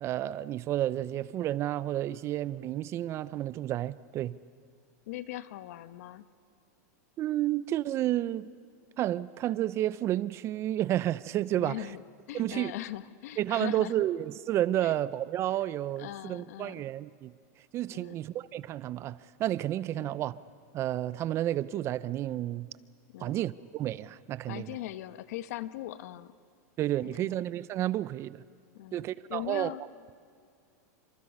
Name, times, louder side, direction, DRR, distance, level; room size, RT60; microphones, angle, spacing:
voice 1, 0.0-4.4 7.2-8.5 9.0-11.9 12.3-12.7 13.4-17.3 17.7-20.4 20.7-22.7 23.2-24.8 26.8-28.4 28.9-29.7, right 13 dB, 30° right, 0.5 m, -31 dB
voice 2, 5.1-6.2 11.6-12.0 12.3-14.0 14.8-15.0 15.5-15.6 16.0-16.8 17.9-18.2 19.9-20.2 23.1-23.4 24.5-26.3 27.0-27.4 28.7-29.8, left 14 dB, 65° left, 1.1 m, -40 dB
29.0 x 25.5 x 5.5 m
supercardioid pair, 145°, 9 cm